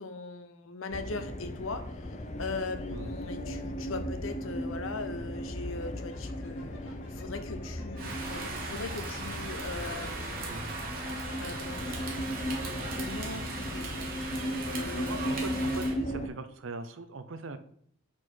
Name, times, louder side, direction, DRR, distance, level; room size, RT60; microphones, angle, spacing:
voice 1, 0.0-6.7 7.1-10.5 11.4-12.0 13.0-14.1 14.7-15.7, left 3 dB, 80° left, 8 dB, 0.8 m, -40 dB
sound 1, 0.9-16.3, equal, 35° left, 0.6 m, -36 dB
sound 2, 2.9-13.5, left 1 dB, 60° left, 1.6 m, -52 dB
Rain, 8.0-15.9, right 3 dB, 45° right, 1.5 m, -39 dB
voice 2, 10.5-10.9 14.9-17.6, right 3 dB, 70° right, 10 dB, 0.6 m, -41 dB
6.7 x 4.4 x 4.5 m, 0.64 s
head